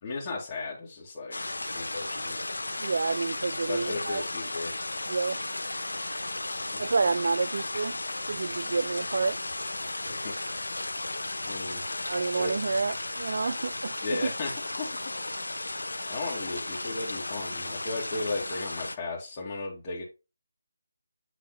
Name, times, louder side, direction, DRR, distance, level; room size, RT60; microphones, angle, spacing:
voice 1, 0.0-2.4 3.7-4.7 6.7-6.9 10.0-10.3 11.4-11.8 12.3-12.5 14.0-14.5 14.8-14.9 16.1-20.0, left 3 dB, 30° left, 2.4 m, -35 dB
sound 1, 1.3-19.0, left 2 dB, 90° left, 1.0 m, -35 dB
voice 2, 2.8-4.2 5.1-5.4 6.8-8.0 8.3-9.4 12.1-14.3, right 4 dB, 60° right, 0.4 m, -29 dB
8.6 x 3.5 x 4.1 m
figure-of-eight pair, 160°, 0 cm